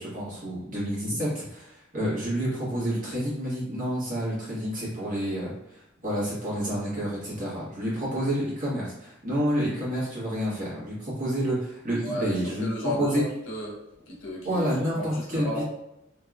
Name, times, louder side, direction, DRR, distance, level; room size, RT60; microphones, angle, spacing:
voice 1, 0.0-12.7 13.0-13.2 14.4-15.6, equal, 40° right, -8 dB, 1.4 m, -29 dB
voice 2, 12.0-13.8 14.1-15.6, left 1 dB, 75° left, -3 dB, 0.9 m, -34 dB
3.0 x 2.7 x 2.4 m, 0.85 s
head